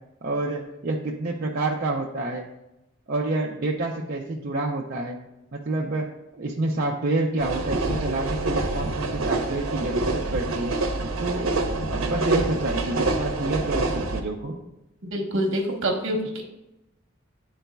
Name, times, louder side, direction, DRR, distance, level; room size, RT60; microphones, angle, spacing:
voice 1, 0.2-2.5 3.1-5.2 5.5-6.1 6.4-10.8 11.2-11.5 11.9-14.6, right 2 dB, 50° right, -3 dB, 0.6 m, -28 dB
sound 1, 7.4-14.2, right 2 dB, 90° right, 0.8 m, -26 dB
voice 2, 15.1-16.4, right 1 dB, 65° right, 1 dB, 1.1 m, -26 dB
10.5 x 4.0 x 2.3 m, 0.91 s
head